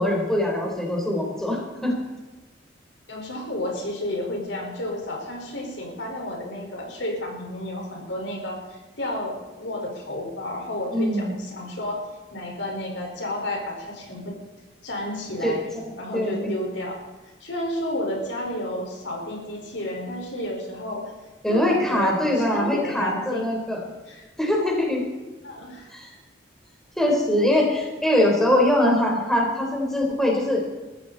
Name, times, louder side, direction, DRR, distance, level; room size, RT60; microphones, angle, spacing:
voice 1, 0.0-1.9 10.9-11.3 15.4-16.5 21.4-23.8 24.4-25.0 25.9-26.1 27.0-30.6, left 1 dB, ahead, -2 dB, 4.0 m, -22 dB
voice 2, 3.1-14.4 14.8-15.7 16.0-17.0 17.4-21.1 21.5-23.4 24.1-24.2 25.4-25.9, left 1 dB, 90° left, 0 dB, 4.8 m, -31 dB
22.5 x 14.5 x 4.2 m, 1.2 s
head